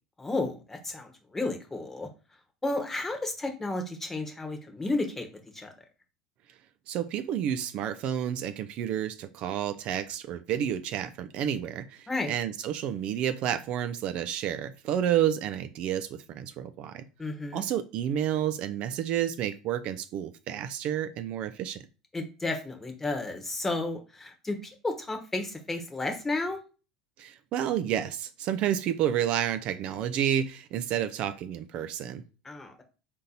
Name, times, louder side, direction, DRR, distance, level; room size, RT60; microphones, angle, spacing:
voice 1, 0.2-2.1 2.6-5.3 5.5-5.7 12.1-12.3 17.2-17.6 22.1-26.6 32.4-32.8, left 2 dB, 15° left, 1.0 m, -32 dB
voice 2, 6.9-17.0 17.5-21.8 27.2-32.2, right 10 dB, 55° right, 0.3 m, -30 dB
3.8 x 2.8 x 4.0 m
hypercardioid pair, 80°, 2 cm